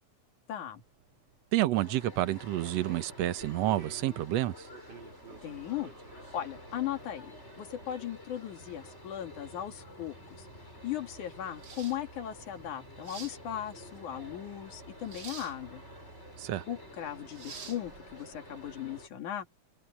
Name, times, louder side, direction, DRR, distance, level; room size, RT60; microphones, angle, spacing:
voice 1, 0.5-0.8 5.4-10.5 10.8-15.8 16.7-19.5, left 11 dB, 85° left, 3.5 m, -38 dB
sound 1, 0.7-19.1, right 3 dB, 85° right, 4.9 m, -57 dB
voice 2, 1.5-4.6 16.4-16.6, right 15 dB, 70° right, 1.9 m, -29 dB
sound 2, 1.7-19.1, left 1 dB, 20° left, 6.7 m, -51 dB
sound 3, 2.6-18.8, right 6 dB, 40° right, 2.4 m, -52 dB
open air
omnidirectional pair, 3.4 m